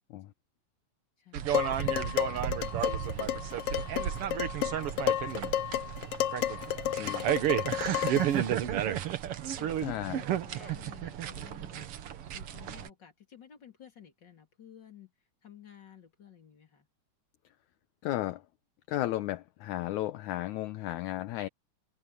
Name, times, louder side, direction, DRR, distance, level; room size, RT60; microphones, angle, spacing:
voice 1, 1.2-4.6 5.3-5.7 7.2-8.8 9.5-12.1 12.3-15.1 15.4-16.9, left 8 dB, 35° left, 3.6 m, -54 dB
sound 1, 1.3-12.9, right 10 dB, 60° right, 1.6 m, -32 dB
Dishes pots and pans, 1.5-8.4, left 11 dB, 90° left, 1.3 m, -32 dB
voice 2, 7.0-7.3 9.8-10.2 18.0-18.4 18.9-21.5, left 15 dB, 75° left, 2.1 m, -34 dB
omnidirectional pair, 3.7 m